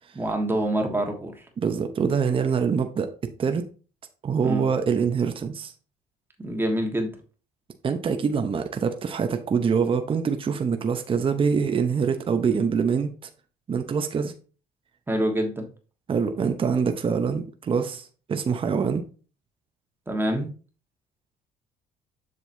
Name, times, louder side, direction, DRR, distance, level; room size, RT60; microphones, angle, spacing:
voice 1, 0.1-1.3 4.4-4.7 6.4-7.1 15.1-15.7 20.1-20.5, right 1 dB, 15° right, 3 dB, 1.5 m, -26 dB
voice 2, 1.6-3.1 3.4-3.6 4.2-5.7 7.8-13.1 13.7-14.3 16.1-19.0, right 6 dB, 30° right, 7 dB, 0.8 m, -24 dB
7.4 x 6.2 x 2.7 m, 0.37 s
cardioid pair, 110°, 17 cm